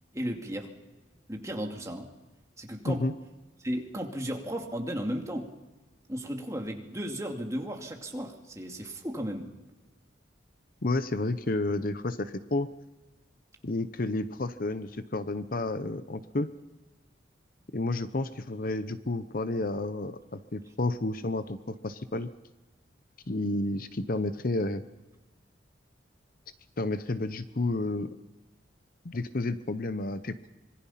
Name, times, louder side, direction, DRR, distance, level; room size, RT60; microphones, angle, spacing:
voice 1, 0.1-0.7 1.3-2.1 2.6-3.0 3.6-5.5 6.1-9.5, equal, 15° right, 2 dB, 2.4 m, -35 dB
voice 2, 10.8-12.7 13.6-16.5 17.7-22.3 23.3-24.8 26.8-28.2 29.0-30.5, left 2 dB, 50° left, 12 dB, 0.8 m, -31 dB
25.5 x 22.5 x 5.8 m, 1.1 s
head